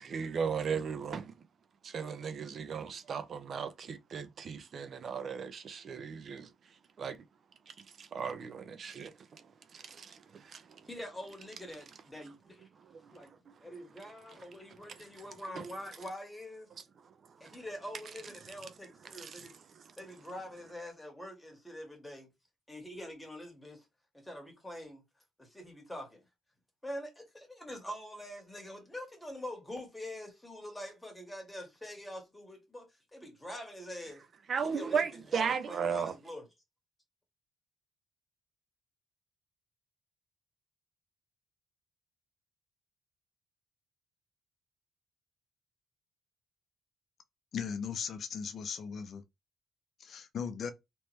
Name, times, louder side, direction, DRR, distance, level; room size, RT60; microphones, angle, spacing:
voice 1, 0.0-1.3 1.8-6.5 7.0-7.2 8.0-9.1 9.7-10.6 15.5-15.6 17.4-17.6 19.0-19.5 34.5-36.1, right 6 dB, 55° right, 0.5 m, -36 dB
voice 2, 10.9-12.7 13.1-13.3 13.6-16.7 17.4-19.5 20.0-22.3 22.7-23.8 24.2-25.0 25.4-26.2 26.8-34.2 34.6-35.0 35.3-36.5, left 1 dB, 10° left, 1.7 m, -45 dB
voice 3, 47.5-49.2 50.0-50.7, left 6 dB, 60° left, 0.5 m, -37 dB
3.2 x 3.0 x 3.1 m
cardioid pair, 90°, 0 cm